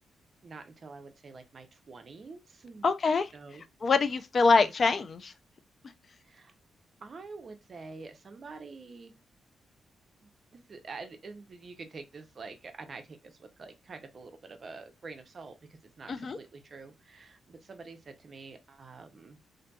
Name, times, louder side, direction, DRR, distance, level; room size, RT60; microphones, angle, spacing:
voice 1, 0.4-2.9 3.3-3.6 4.5-4.7 6.2-6.5 7.0-9.1 10.2-19.4, right 4 dB, 45° right, 0.5 m, -47 dB
voice 2, 2.8-3.3 3.8-5.3 16.1-16.4, left 4 dB, 45° left, 0.3 m, -25 dB
2.6 x 2.5 x 2.2 m
cardioid pair, 105°, 0 cm